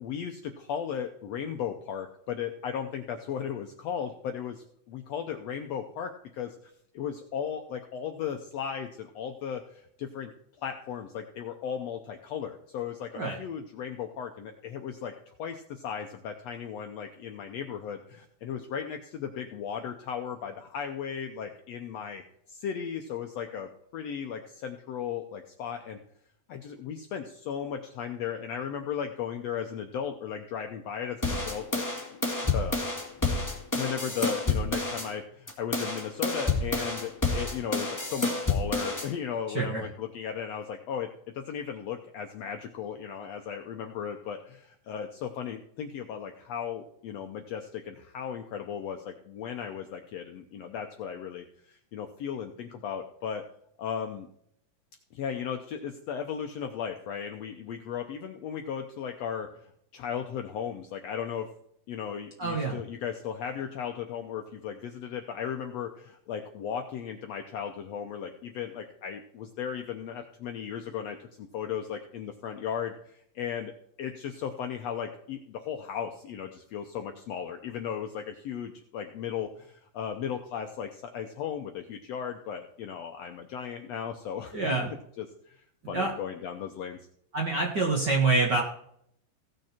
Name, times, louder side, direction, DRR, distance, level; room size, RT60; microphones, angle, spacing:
voice 1, 0.0-6.5 6.9-10.3 10.6-22.2 22.5-26.0 26.5-31.8 32.1-32.8 33.1-33.3 33.7-41.1 41.3-53.4 53.8-54.3 55.1-61.5 61.9-87.0, left 8 dB, 75° left, 4 dB, 1.6 m, -36 dB
sound 1, 31.2-35.1 35.5-39.1, left 3 dB, 5° left, 1.6 m, -29 dB
voice 2, 39.5-39.8 62.4-62.8 84.5-84.9 85.9-86.1 87.3-88.6, right 3 dB, 45° right, -1 dB, 1.4 m, -26 dB
17.0 x 6.5 x 4.4 m, 0.69 s
omnidirectional pair, 3.8 m